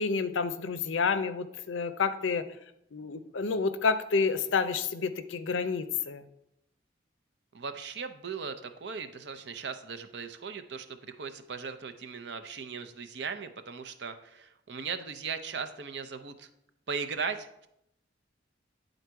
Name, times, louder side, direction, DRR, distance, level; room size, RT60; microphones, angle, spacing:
voice 1, 0.0-2.4 2.9-6.2, left 5 dB, 85° left, 11 dB, 0.6 m, -29 dB
voice 2, 7.5-16.5 16.9-17.5, right 5 dB, 65° right, 8 dB, 0.6 m, -38 dB
9.9 x 3.9 x 4.6 m, 0.80 s
head